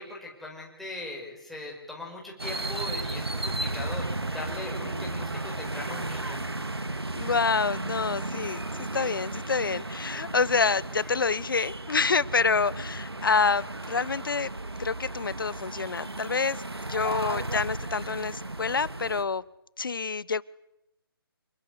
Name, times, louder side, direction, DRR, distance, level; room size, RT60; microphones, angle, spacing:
voice 1, 0.0-6.4, left 2 dB, ahead, -3 dB, 5.6 m, -40 dB
sound 1, 2.4-19.2, right 2 dB, 85° right, 3.0 m, -34 dB
voice 2, 7.1-8.6 8.9-14.5 14.8-16.6 16.8-19.4 19.8-20.4, left 5 dB, 60° left, 21 dB, 1.0 m, -27 dB
28.0 x 20.5 x 9.6 m, 0.86 s
figure-of-eight pair, 150°, 13 cm